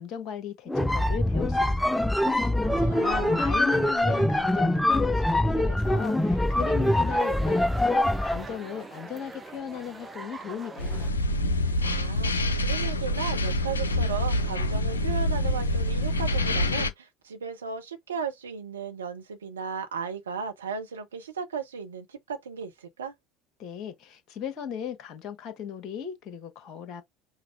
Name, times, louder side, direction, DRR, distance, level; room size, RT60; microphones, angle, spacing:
voice 1, 0.0-11.0 23.6-27.0, left 8 dB, 45° left, 1.4 m, -37 dB
sound 1, 0.7-8.5, left 1 dB, 5° left, 0.4 m, -24 dB
voice 2, 2.7-3.4 11.8-23.1, right 6 dB, 75° right, 0.9 m, -36 dB
sound 2, 5.8-11.1, right 3 dB, 15° right, 0.9 m, -43 dB
sound 3, 10.8-16.9, left 1 dB, 75° left, 0.6 m, -26 dB
5.7 x 2.3 x 3.5 m
figure-of-eight pair, 65°, 0 cm